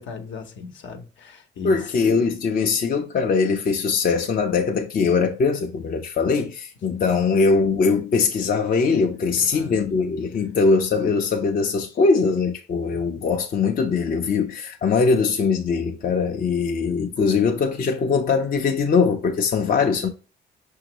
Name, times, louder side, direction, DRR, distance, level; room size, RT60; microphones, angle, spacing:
voice 1, 0.0-1.9 6.9-7.0 9.3-9.8 16.7-17.1, left 5 dB, 70° left, 0.9 m, -38 dB
voice 2, 1.6-20.1, left 4 dB, 45° left, 0.6 m, -21 dB
5.9 x 2.8 x 2.9 m
cardioid pair, 90°, 20 cm